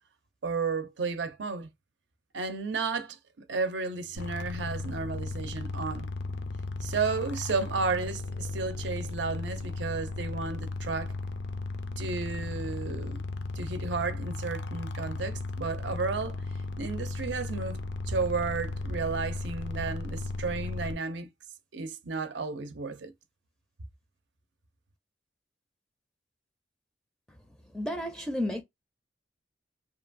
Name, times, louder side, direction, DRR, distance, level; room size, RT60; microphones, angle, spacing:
voice 1, 0.4-1.7 2.3-3.2 3.5-6.1 6.8-11.2 12.0-13.2 13.6-16.4 16.8-21.3 21.7-23.1, right 4 dB, 85° right, 0.6 m, -33 dB
sound 1, 4.2-20.9, left 2 dB, 80° left, 0.4 m, -35 dB
voice 2, 27.7-28.6, left 1 dB, 5° left, 0.4 m, -31 dB
2.8 x 2.3 x 2.4 m
head